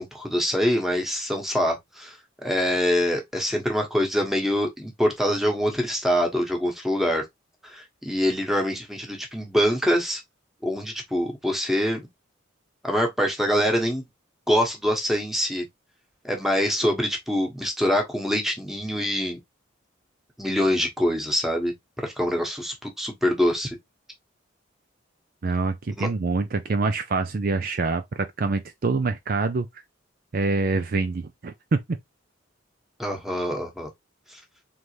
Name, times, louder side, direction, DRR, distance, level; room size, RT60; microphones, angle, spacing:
voice 1, 0.0-7.2 7.6-10.2 10.6-12.1 12.8-14.0 14.5-15.6 16.2-19.4 20.4-23.7 26.0-26.1 33.0-33.9 34.3-34.4, equal, ahead, 1.1 m, -25 dB
voice 2, 25.4-29.7 30.3-31.8, right 3 dB, 45° right, 0.4 m, -25 dB
3.9 x 3.4 x 3.1 m
head